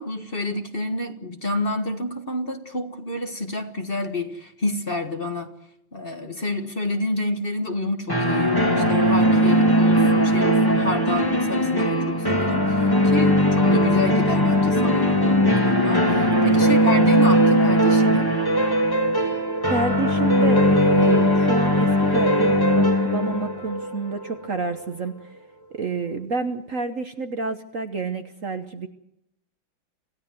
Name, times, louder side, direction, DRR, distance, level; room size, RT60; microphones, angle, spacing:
voice 1, 0.0-5.5 5.9-18.3, left 2 dB, 30° left, 1.7 m, -29 dB
sound 1, 8.1-24.8, equal, 10° left, 2.2 m, -19 dB
voice 2, 19.7-25.3 25.7-28.9, right 3 dB, 45° right, 1.3 m, -29 dB
27.0 x 16.0 x 7.8 m
omnidirectional pair, 2.2 m